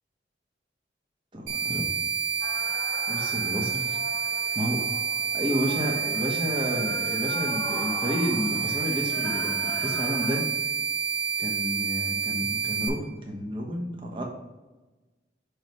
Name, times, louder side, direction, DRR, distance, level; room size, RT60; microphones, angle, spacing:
voice 1, 1.3-1.9 3.1-4.0 4.5-4.8 5.3-10.4 11.4-14.2, equal, 30° right, 0 dB, 1.1 m, -31 dB
sound 1, 1.5-12.9, right 6 dB, 80° right, 1.6 m, -29 dB
sound 2, 2.4-10.4, left 1 dB, 15° left, 0.9 m, -40 dB
6.3 x 3.1 x 5.2 m, 1.1 s
head